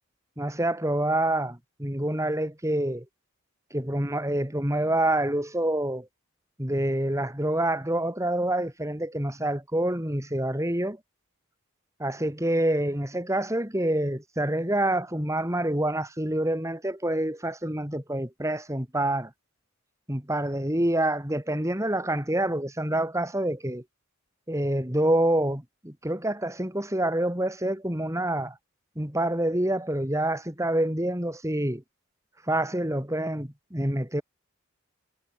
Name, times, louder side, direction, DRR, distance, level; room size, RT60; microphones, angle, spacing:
voice 1, 0.4-3.0 3.7-6.1 6.6-11.0 12.0-19.3 20.1-23.8 24.5-28.5 29.0-31.8 32.5-34.2, right 1 dB, 15° right, 3.2 m, -27 dB
head